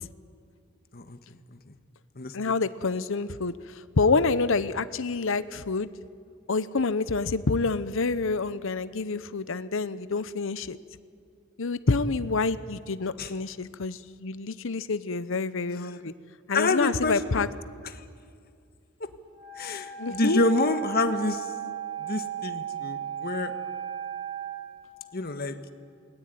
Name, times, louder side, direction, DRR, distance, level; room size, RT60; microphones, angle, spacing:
voice 1, 2.3-5.9 6.5-10.8 11.6-16.1 16.5-17.5 20.0-20.4, left 4 dB, 70° left, 14 dB, 0.9 m, -27 dB
voice 2, 16.5-17.5 17.9-18.0 19.0-19.1 19.6-21.5 22.0-23.5 25.1-25.6, left 2 dB, 50° left, 9 dB, 1.5 m, -27 dB
Wind instrument woodwind instrument, 19.3-24.6, right 10 dB, 25° right, 5.5 m, -36 dB
28.5 x 20.5 x 9.3 m, 2.3 s
head